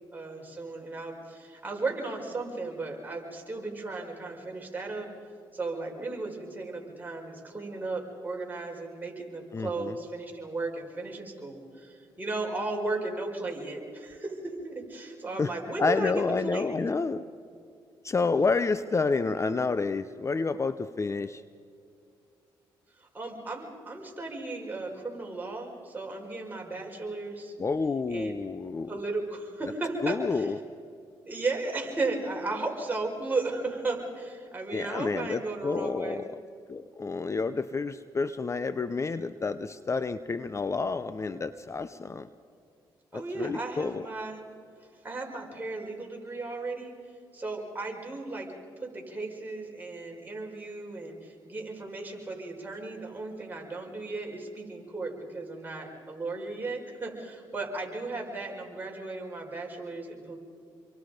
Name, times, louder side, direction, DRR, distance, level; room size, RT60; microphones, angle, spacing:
voice 1, 0.1-5.1 5.5-16.1 16.4-16.7 23.0-27.5 28.1-28.4 28.9-30.5 31.3-36.2 43.1-44.4 45.0-46.9 47.3-48.5 48.8-60.4, right 3 dB, 20° right, -1 dB, 5.6 m, -35 dB
voice 2, 9.5-9.9 15.4-15.5 15.8-17.3 18.0-21.4 27.6-28.9 30.0-30.6 34.7-36.3 36.7-42.3 43.1-44.1, left 4 dB, 30° left, 13 dB, 0.7 m, -29 dB
28.5 x 23.5 x 5.2 m, 2.3 s
cardioid pair, 75°, 9 cm